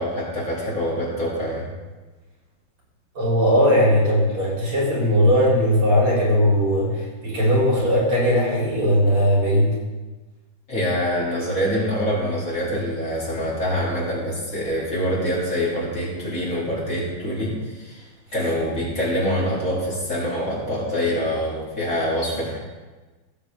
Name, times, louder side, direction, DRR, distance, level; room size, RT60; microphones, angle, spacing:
voice 1, 0.0-1.7 10.7-18.0 18.3-22.6, equal, 35° left, -6 dB, 3.0 m, -25 dB
voice 2, 3.2-9.7, equal, 90° right, -5 dB, 4.5 m, -19 dB
15.5 x 7.3 x 3.4 m, 1.2 s
omnidirectional pair, 2.3 m